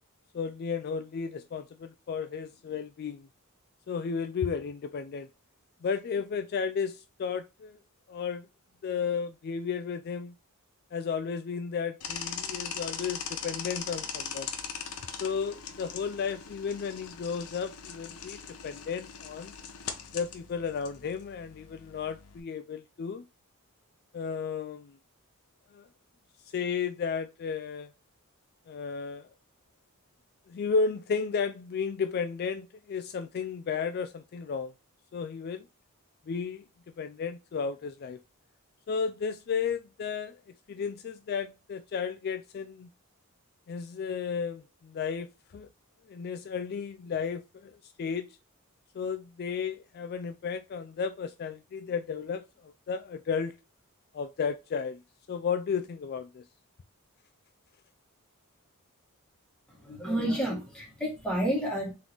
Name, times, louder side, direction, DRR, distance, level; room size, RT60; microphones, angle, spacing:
voice 1, 0.3-3.3 3.9-5.3 5.8-7.8 8.1-8.5 8.8-10.3 10.9-14.5 15.2-19.5 20.1-23.2 24.1-25.0 25.7-25.9 26.5-27.9 28.7-29.3 30.5-34.7 35.1-35.7 36.3-36.6 37.0-38.2 38.9-40.4 40.7-42.9 43.7-45.7 46.1-48.4 48.9-53.6 54.1-55.0 55.3-56.4, left 6 dB, 45° left, 0.3 m, -33 dB
sound 1, 12.0-22.4, left 7 dB, 80° left, 0.8 m, -40 dB
voice 2, 59.8-61.9, right 1 dB, 5° left, 1.9 m, -30 dB
3.8 x 3.8 x 2.9 m
head